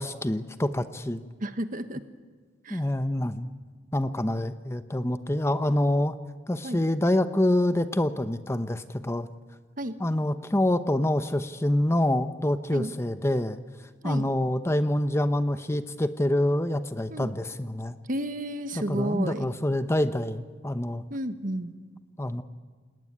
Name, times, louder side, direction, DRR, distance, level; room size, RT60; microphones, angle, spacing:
voice 1, 0.0-1.2 2.7-3.5 3.9-6.2 6.5-9.3 10.0-13.6 14.0-18.0 18.9-21.0 22.2-22.4, left 1 dB, 15° left, 10 dB, 0.8 m, -26 dB
voice 2, 1.4-2.0 2.6-2.9 6.6-6.8 9.8-10.0 12.7-12.9 14.0-14.3 17.1-17.3 18.1-19.5 21.1-21.7, right 1 dB, 45° right, 10 dB, 1.5 m, -32 dB
28.5 x 18.5 x 9.9 m, 1.5 s
head